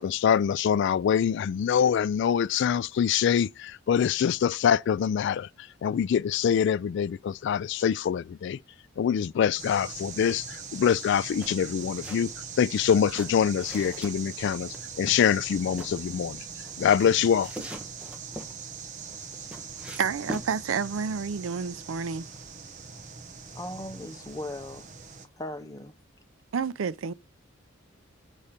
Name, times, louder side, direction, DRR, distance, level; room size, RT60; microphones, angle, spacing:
voice 1, 0.0-8.6 9.0-12.3 12.6-16.4 16.8-17.5, left 8 dB, 60° left, 0.3 m, -25 dB
sound 1, 9.6-25.3, right 6 dB, 40° right, 0.9 m, -41 dB
sound 2, 11.4-12.3 12.6-14.1 14.7-15.9 16.6-18.5 19.0-20.5, equal, 5° right, 1.1 m, -42 dB
voice 2, 19.9-22.3 26.5-27.1, right 6 dB, 85° right, 0.5 m, -30 dB
voice 3, 23.5-24.9 25.4-25.9, left 1 dB, 20° left, 0.8 m, -38 dB
7.2 x 4.2 x 5.0 m
head